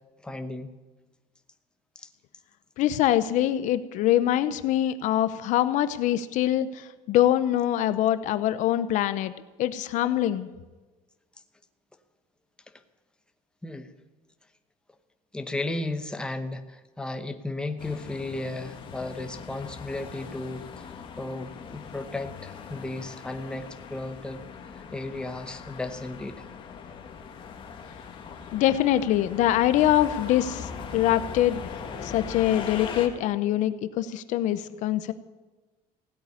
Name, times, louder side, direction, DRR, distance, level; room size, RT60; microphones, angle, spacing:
voice 1, 0.2-0.7 1.9-2.1 13.6-13.9 15.3-24.4 24.7-26.5, left 2 dB, 5° left, 7 dB, 0.9 m, -35 dB
voice 2, 2.8-9.3 9.6-10.5 28.5-31.6 32.0-35.1, left 12 dB, 60° left, 12 dB, 0.7 m, -24 dB
sound 1, 17.8-33.1, left 6 dB, 35° left, 1.9 m, -40 dB
16.5 x 8.5 x 9.7 m, 1.2 s
cardioid pair, 150°, 15 cm